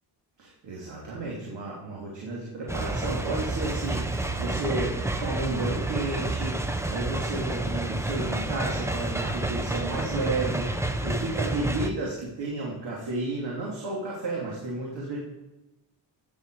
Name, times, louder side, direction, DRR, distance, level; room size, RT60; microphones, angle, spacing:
voice 1, 0.4-6.6 6.8-15.2, right 2 dB, 70° right, -4 dB, 3.0 m, -32 dB
sound 1, 2.7-11.9, right 2 dB, 5° right, 0.7 m, -29 dB
14.5 x 9.4 x 4.9 m, 1.1 s
cardioid pair, 120°, 45 cm